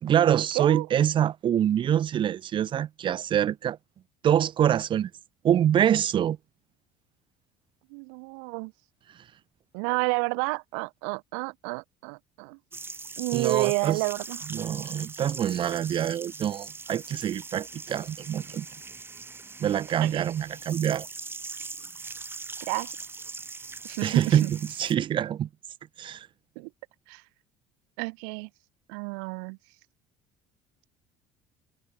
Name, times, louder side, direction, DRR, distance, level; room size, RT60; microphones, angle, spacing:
voice 1, 0.0-3.8 4.2-5.1 5.4-6.4 13.3-14.0 14.5-18.6 19.6-21.1 24.0-25.5 26.0-26.3, right 10 dB, 45° right, 1.6 m, -25 dB
voice 2, 0.5-0.9 7.9-8.7 9.7-12.6 13.2-14.5 20.0-20.2 22.7-22.9 23.8-24.5 26.5-26.7 27.1-27.2 28.0-28.5 28.9-29.6, right 40 dB or more, 90° right, 1.8 m, -30 dB
sound 1, 12.7-24.9, right 4 dB, 20° right, 3.4 m, -41 dB
cardioid pair, 110°, 12 cm